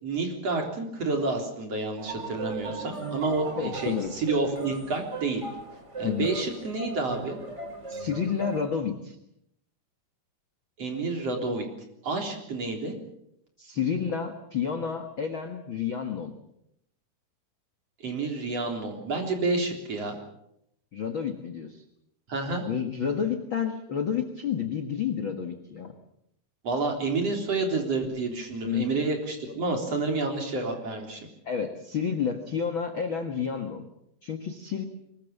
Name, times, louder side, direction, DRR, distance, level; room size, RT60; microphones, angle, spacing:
voice 1, 0.0-5.4 6.0-7.4 10.8-11.7 12.0-12.9 18.0-20.2 22.3-22.6 26.6-31.2, right 3 dB, 40° right, 3 dB, 4.4 m, -29 dB
sound 1, 2.0-8.6, right 3 dB, 20° right, 3.5 m, -38 dB
voice 2, 3.6-4.1 6.0-6.3 7.9-9.2 13.6-16.3 20.9-21.8 22.7-25.9 28.7-28.9 31.4-33.8 34.2-34.8, left 7 dB, 55° left, 6 dB, 1.4 m, -30 dB
23.5 x 21.0 x 7.3 m, 0.78 s
omnidirectional pair, 4.7 m